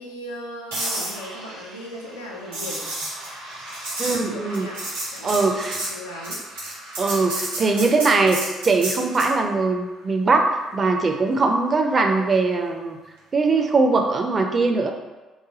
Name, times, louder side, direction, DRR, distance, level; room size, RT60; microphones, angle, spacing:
voice 1, 0.0-2.8 4.0-6.4, equal, 85° left, -2 dB, 0.4 m, -37 dB
sound 1, 0.7-9.4 13.5-13.8, right 1 dB, 80° right, 1.2 m, -32 dB
voice 2, 4.0-4.7 5.2-5.8 7.0-8.4 8.6-13.0 13.3-14.9, right 3 dB, 35° right, 4 dB, 0.4 m, -21 dB
3.2 x 2.1 x 3.8 m, 1.2 s
figure-of-eight pair, 50°, 0 cm